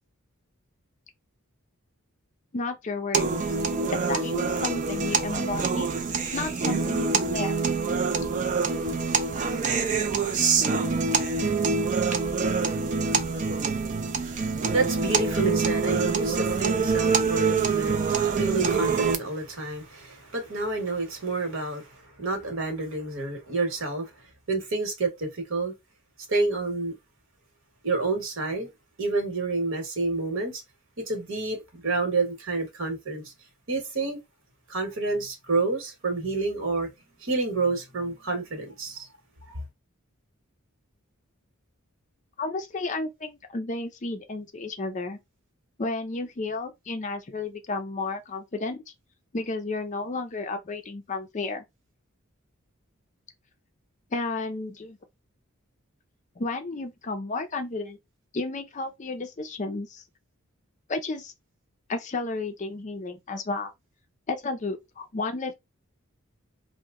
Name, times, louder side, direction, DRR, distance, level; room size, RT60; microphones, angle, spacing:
voice 1, 2.5-3.6 3.9-5.9 6.3-7.5 42.4-45.2 45.8-48.8 49.3-51.6 54.1-55.0 56.4-58.0 58.3-60.0 60.9-61.3 61.9-63.7 64.3-65.5, left 3 dB, 35° left, 0.4 m, -32 dB
sound 1, 3.1-19.2, right 4 dB, 35° right, 0.4 m, -25 dB
voice 2, 14.7-24.1 24.5-25.7 26.3-26.9 27.8-28.7 29.0-30.6 31.1-33.3 33.7-34.2 34.7-36.9 37.2-39.0 39.5-39.6, right 3 dB, 65° right, 1.1 m, -29 dB
2.9 x 2.1 x 3.5 m
head